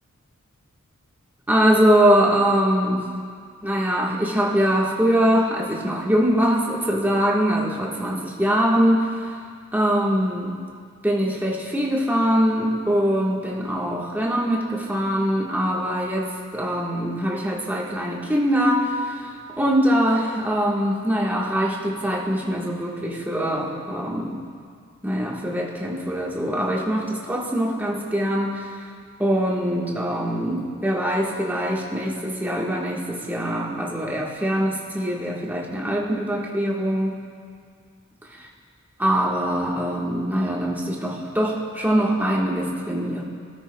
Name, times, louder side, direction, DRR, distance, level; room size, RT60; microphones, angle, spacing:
voice 1, 1.5-3.0 3.6-9.4 9.7-10.5 11.0-16.3 16.5-24.4 25.0-28.8 29.2-37.2 38.3-38.5 39.0-43.2, equal, 10° right, -4 dB, 1.4 m, -23 dB
19.5 x 13.5 x 2.3 m, 2.1 s
head